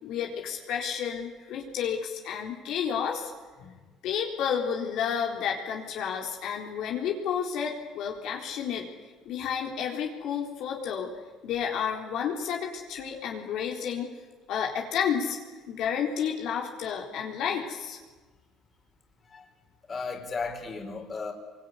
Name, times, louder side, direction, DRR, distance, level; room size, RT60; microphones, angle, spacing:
voice 1, 0.0-3.3 3.6-3.8 4.0-8.9 9.3-11.1 11.4-14.1 14.5-15.4 15.7-18.0, left 7 dB, 70° left, 0 dB, 4.0 m, -31 dB
voice 2, 19.9-21.3, left 4 dB, 35° left, 3 dB, 4.9 m, -35 dB
24.5 x 24.0 x 9.8 m, 1.3 s
supercardioid pair, 95°, 0 cm